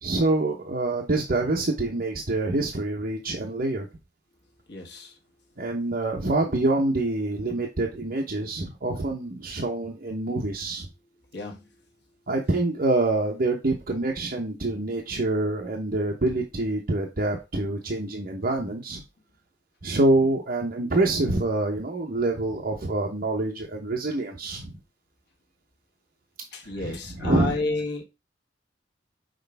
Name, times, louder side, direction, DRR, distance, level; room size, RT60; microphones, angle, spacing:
voice 1, 0.0-3.9 5.6-10.9 12.3-19.0 19.8-24.8 26.8-27.6, right 2 dB, 50° right, 1.0 m, -26 dB
voice 2, 4.7-5.2 11.3-11.7 26.5-28.0, left 3 dB, 65° left, 1.5 m, -31 dB
6.5 x 4.4 x 3.4 m
head